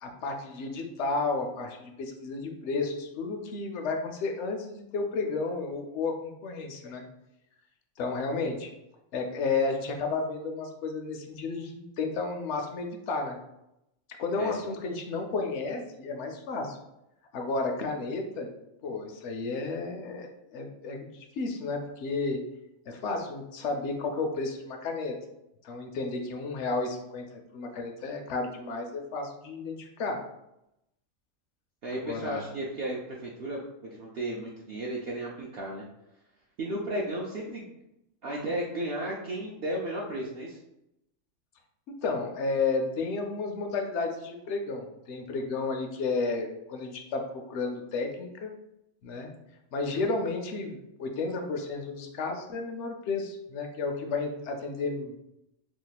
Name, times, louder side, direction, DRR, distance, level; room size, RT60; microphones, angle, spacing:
voice 1, 0.0-7.0 8.0-8.7 9.1-13.4 14.2-16.8 17.3-18.5 18.8-22.4 22.9-25.1 25.6-30.2 32.0-32.5 41.9-48.5 49.0-49.3 49.7-55.1, left 3 dB, 65° left, 4 dB, 0.8 m, -32 dB
voice 2, 31.8-35.8 36.6-37.7 38.2-40.6, right 1 dB, 60° right, -3 dB, 0.6 m, -34 dB
2.9 x 2.3 x 3.9 m, 0.86 s
omnidirectional pair, 1.4 m